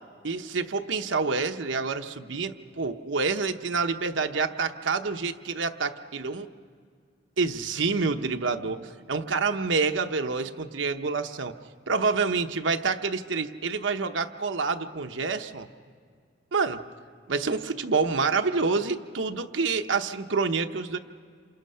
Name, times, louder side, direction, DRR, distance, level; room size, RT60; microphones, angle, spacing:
voice 1, 0.2-6.5 7.4-11.5 11.9-15.7 16.5-16.8 17.3-21.0, right 4 dB, 80° right, 6 dB, 0.9 m, -27 dB
28.0 x 27.0 x 5.6 m, 2.1 s
head